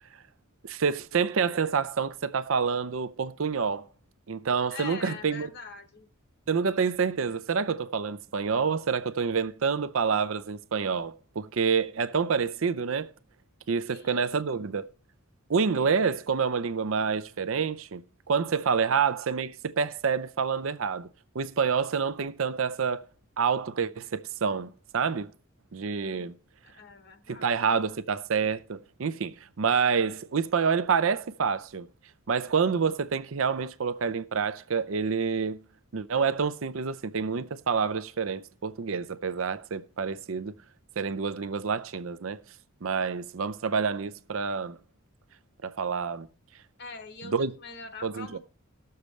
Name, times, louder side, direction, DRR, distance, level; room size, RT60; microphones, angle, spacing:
voice 1, 0.6-3.8 4.3-5.5 6.5-13.1 13.7-14.9 15.5-21.1 21.3-23.0 23.4-25.3 25.7-26.3 27.3-31.9 32.3-35.6 35.9-40.5 41.0-42.4 42.8-44.8 45.6-46.3 47.2-47.5 48.0-48.4, right 5 dB, 65° right, 0.5 m, -28 dB
voice 2, 4.7-6.1 13.9-14.2 26.0-26.3 26.6-27.7 46.8-48.4, left 4 dB, 50° left, 1.0 m, -43 dB
19.0 x 6.7 x 3.2 m
head